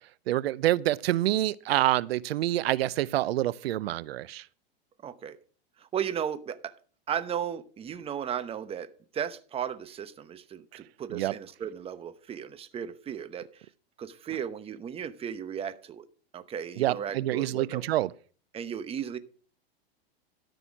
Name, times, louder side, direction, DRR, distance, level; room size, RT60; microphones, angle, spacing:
voice 1, 0.3-4.4 11.1-11.3 16.8-18.1, right 15 dB, 85° right, 0.6 m, -27 dB
voice 2, 5.0-5.4 5.8-6.7 7.1-13.6 14.0-16.1 16.3-17.8 18.5-19.2, right 8 dB, 20° right, 0.9 m, -35 dB
13.0 x 6.1 x 6.0 m
supercardioid pair, 135°, 30 cm